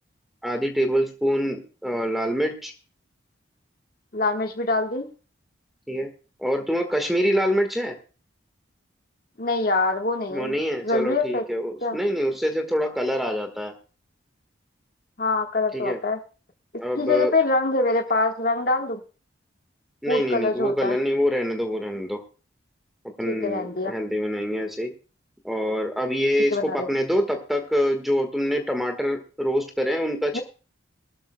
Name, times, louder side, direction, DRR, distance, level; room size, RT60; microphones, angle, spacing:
voice 1, 0.4-2.7 5.9-6.1 6.4-8.0 10.3-13.7 15.7-16.0 16.8-17.3 20.0-22.2 23.2-24.9 25.4-30.4, equal, ahead, 5 dB, 1.4 m, -25 dB
voice 2, 4.1-5.1 9.4-10.5 10.8-11.4 11.8-12.0 15.2-16.2 17.0-19.0 20.1-21.0 23.2-23.9 26.5-26.9 30.3-30.4, left 3 dB, 45° left, 4 dB, 1.4 m, -24 dB
20.5 x 13.0 x 2.2 m, 0.36 s
head